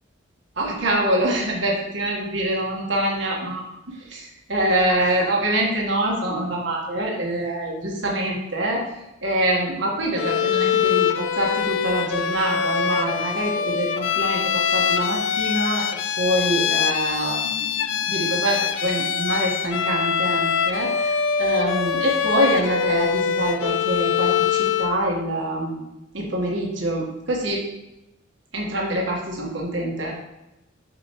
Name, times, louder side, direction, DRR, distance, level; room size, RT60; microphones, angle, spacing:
voice 1, 0.6-8.8 9.2-25.8 26.1-27.7 28.5-30.1, right 1 dB, 65° right, -2 dB, 1.5 m, -25 dB
Bowed string instrument, 10.2-25.0, left 7 dB, 75° left, 0.4 m, -23 dB
8.0 x 6.0 x 3.1 m, 0.90 s
head